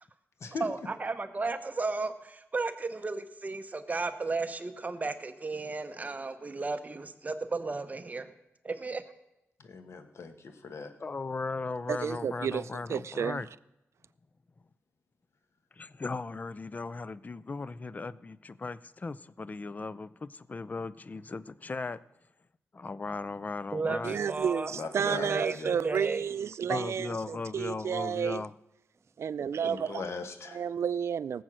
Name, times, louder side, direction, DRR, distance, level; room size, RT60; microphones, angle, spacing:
voice 1, 0.6-8.3 8.6-9.0 23.7-24.7 25.0-26.2, right 3 dB, 35° right, 0.9 m, -34 dB
voice 2, 9.6-10.9 24.7-25.8 29.6-30.6, left 4 dB, 75° left, 1.3 m, -39 dB
voice 3, 11.0-13.5 15.7-22.0 22.7-24.2 26.7-28.5, left 3 dB, 35° left, 0.5 m, -37 dB
voice 4, 11.9-13.4 24.0-28.4 29.2-30.0 30.5-31.4, right 7 dB, 75° right, 0.4 m, -31 dB
18.0 x 7.8 x 6.2 m
wide cardioid pair, 90°, 5 cm